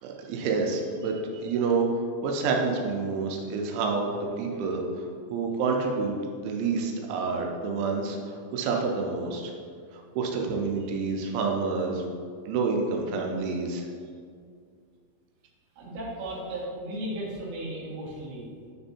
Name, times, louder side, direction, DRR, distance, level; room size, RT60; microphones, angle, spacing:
voice 1, 0.0-1.9 2.2-9.5 10.2-12.0 12.5-13.9, right 4 dB, 85° right, 1 dB, 3.1 m, -28 dB
voice 2, 15.8-18.4, right 1 dB, 55° right, -7 dB, 2.1 m, -35 dB
9.4 x 3.4 x 4.1 m, 2.2 s
omnidirectional pair, 5.4 m